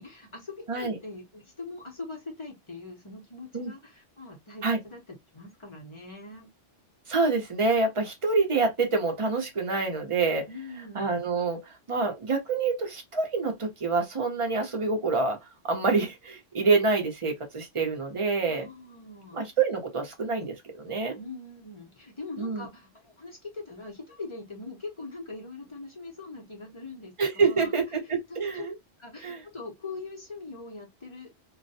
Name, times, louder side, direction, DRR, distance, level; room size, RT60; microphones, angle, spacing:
voice 1, 0.0-5.0 5.3-6.5 10.5-11.1 18.5-19.4 21.1-27.7 28.3-28.7 29.0-31.3, left 3 dB, 30° left, 0.7 m, -42 dB
voice 2, 7.1-10.5 10.9-15.4 15.6-18.7 19.3-21.2 22.4-22.7 27.2-28.7 29.2-29.4, right 4 dB, 35° right, 0.6 m, -27 dB
2.4 x 2.1 x 2.6 m
omnidirectional pair, 1.3 m